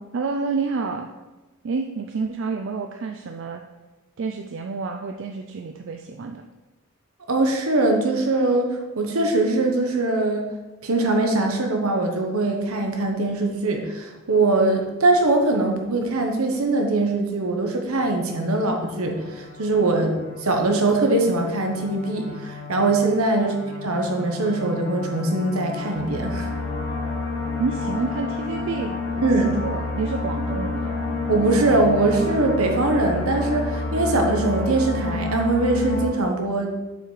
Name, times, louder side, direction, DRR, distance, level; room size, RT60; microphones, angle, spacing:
voice 1, 0.1-1.1 1.6-3.6 4.2-6.4 23.4-23.6 27.6-29.3 29.6-31.0, right 4 dB, 55° right, 4 dB, 0.3 m, -29 dB
voice 2, 7.3-10.5 10.8-23.6 23.8-26.5 29.2-29.6 31.3-36.8, right 2 dB, 75° right, 3 dB, 1.0 m, -22 dB
sound 1, 18.0-36.1, left 3 dB, 50° left, 1.4 m, -30 dB
7.1 x 5.6 x 3.2 m, 1.2 s
head